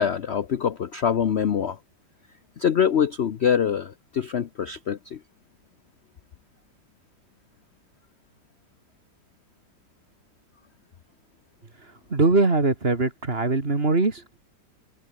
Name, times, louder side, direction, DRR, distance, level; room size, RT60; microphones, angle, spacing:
voice 1, 0.0-1.8 2.6-5.2, left 8 dB, 50° left, 0.9 m, -24 dB
voice 2, 12.1-14.2, right 3 dB, 35° right, 2.6 m, -21 dB
omnidirectional pair, 1.9 m